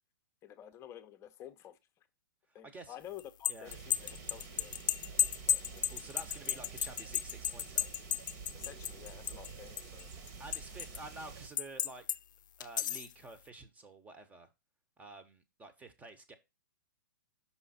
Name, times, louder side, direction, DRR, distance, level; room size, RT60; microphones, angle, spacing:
voice 1, 0.4-1.8 2.5-4.7 5.5-5.9 8.5-10.1, left 11 dB, 25° left, 0.8 m, -51 dB
voice 2, 2.5-3.0 3.5-3.7 5.9-7.9 10.4-12.2 12.6-14.5 15.0-16.4, right 2 dB, 15° right, 1.1 m, -50 dB
sound 1, 3.2-9.5 9.8-11.0 11.6-12.2 12.6-13.1, left 9 dB, 60° left, 0.4 m, -33 dB
sound 2, 3.6-11.5, right 5 dB, 45° right, 1.7 m, -49 dB
5.7 x 5.5 x 4.2 m
hypercardioid pair, 130°, 11 cm